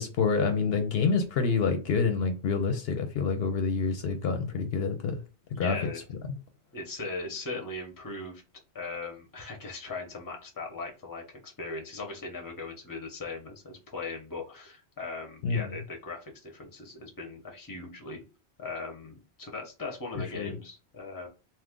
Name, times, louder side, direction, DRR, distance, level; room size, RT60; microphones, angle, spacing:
voice 1, 0.0-5.2 5.6-5.8 15.4-15.7 20.3-20.5, left 5 dB, 70° left, 0.8 m, -27 dB
voice 2, 5.5-6.0 6.7-8.4 8.7-18.2 18.6-21.3, left 3 dB, 20° left, 0.8 m, -39 dB
2.8 x 2.4 x 3.6 m
omnidirectional pair, 1.1 m